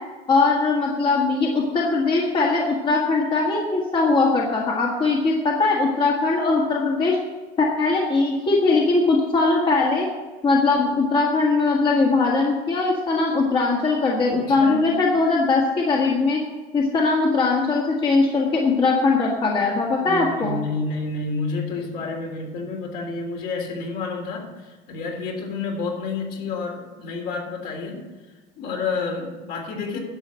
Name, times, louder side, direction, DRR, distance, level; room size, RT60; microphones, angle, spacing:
voice 1, 0.3-7.2 7.6-10.1 10.4-16.4 16.7-20.6, left 3 dB, 30° left, -2 dB, 1.7 m, -20 dB
voice 2, 14.5-15.0 20.0-28.0 28.6-30.0, left 3 dB, 60° left, 0 dB, 3.4 m, -29 dB
11.5 x 7.0 x 7.5 m, 1.3 s
cardioid pair, 150°, 17 cm